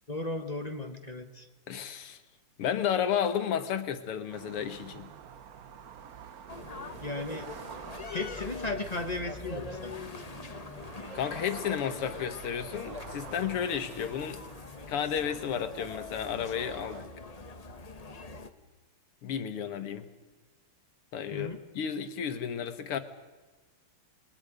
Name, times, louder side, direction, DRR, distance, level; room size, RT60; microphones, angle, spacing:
voice 1, 0.1-1.5 7.0-7.5 8.1-10.0 21.3-21.6, left 2 dB, 25° left, 6 dB, 1.0 m, -35 dB
voice 2, 1.7-2.2 2.6-5.1 11.1-14.4 14.9-17.1 19.2-20.1 21.1-21.5 21.7-23.0, left 8 dB, 85° left, 10 dB, 2.2 m, -32 dB
sound 1, 4.3-17.0, right 8 dB, 60° right, 1.0 m, -48 dB
sound 2, 6.5-18.5, left 4 dB, 50° left, 0.4 m, -43 dB
29.5 x 21.5 x 5.1 m, 1.3 s
omnidirectional pair, 2.4 m